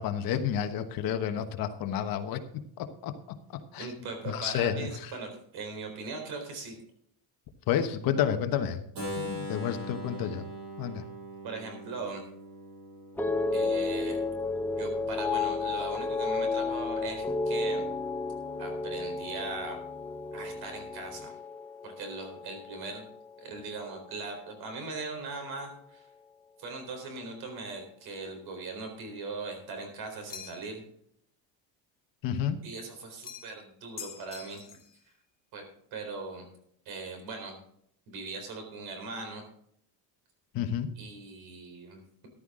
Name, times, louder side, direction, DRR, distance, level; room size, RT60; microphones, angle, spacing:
voice 1, 0.0-2.4 2.8-3.1 3.7-3.9 4.3-5.1 7.7-8.8 9.2-10.5 10.8-11.0 32.2-32.6 40.5-40.9, left 9 dB, 55° left, 8 dB, 1.2 m, -30 dB
voice 2, 3.8-6.8 11.4-12.2 13.5-14.2 14.8-17.8 18.6-19.8 20.3-21.4 21.8-23.0 23.4-26.1 26.6-30.8 32.6-34.6 35.5-35.6 35.9-36.5 36.9-37.6 38.1-39.4 41.0-42.3, right 3 dB, 60° right, 4 dB, 4.1 m, -39 dB
Keyboard (musical), 9.0-14.8, equal, 40° right, 6.1 m, -41 dB
sound 1, 13.2-23.5 23.8-24.4, left 3 dB, 5° left, 0.5 m, -32 dB
sound 2, 30.3-30.8 33.2-33.6 34.0-34.9, left 6 dB, 20° left, 1.2 m, -44 dB
14.0 x 11.5 x 3.7 m, 0.69 s
cardioid pair, 175°, 43 cm